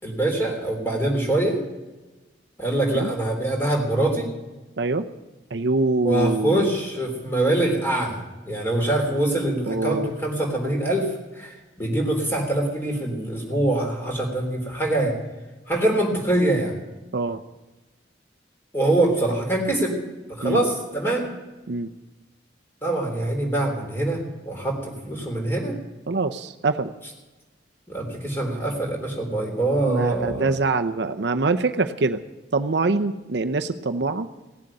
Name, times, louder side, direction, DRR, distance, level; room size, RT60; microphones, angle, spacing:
voice 1, 0.0-1.6 2.6-4.3 6.0-8.2 8.4-11.1 11.3-15.1 15.7-16.7 18.7-19.9 20.4-21.3 22.8-25.7 27.9-30.5, right 1 dB, 10° left, 1 dB, 3.6 m, -24 dB
voice 2, 4.8-5.1 5.5-6.7 9.7-10.1 17.1-17.4 20.4-20.6 21.7-21.9 26.1-26.9 29.9-32.2 32.5-34.3, right 3 dB, 65° right, 7 dB, 0.7 m, -24 dB
18.0 x 7.7 x 9.8 m, 1.2 s
head